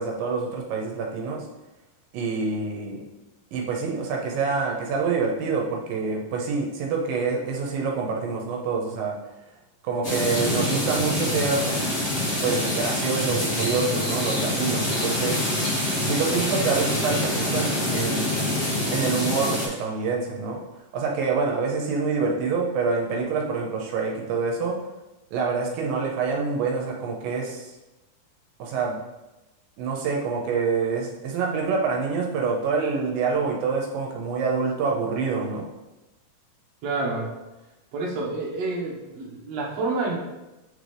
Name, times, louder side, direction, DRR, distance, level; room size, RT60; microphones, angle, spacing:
voice 1, 0.0-1.5 2.1-3.1 3.5-9.2 9.8-11.8 12.4-15.4 16.0-18.6 18.9-20.6 20.9-24.8 25.3-27.7 28.6-29.0 29.8-35.7, right 4 dB, 80° right, 0 dB, 2.5 m, -26 dB
sound 1, 10.0-19.7, left 1 dB, 60° left, 0.7 m, -26 dB
voice 2, 36.8-37.3 37.9-40.2, right 3 dB, 60° right, -4 dB, 2.0 m, -28 dB
8.6 x 3.9 x 3.3 m, 1.0 s
omnidirectional pair, 4.0 m